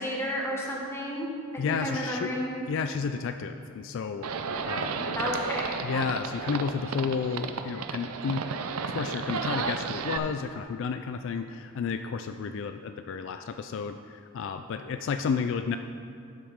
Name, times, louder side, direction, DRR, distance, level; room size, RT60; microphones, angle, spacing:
voice 1, 0.0-1.3 1.7-2.5 5.2-5.7, equal, 10° left, -2 dB, 1.3 m, -31 dB
voice 2, 1.6-2.3 2.7-4.3 4.7-5.2 5.8-8.4 8.8-15.8, left 6 dB, 60° left, 8 dB, 0.3 m, -32 dB
Livestock farm animals working animals, 4.2-10.2, right 5 dB, 85° right, 0.5 m, -33 dB
12.0 x 7.1 x 3.6 m, 2.4 s
head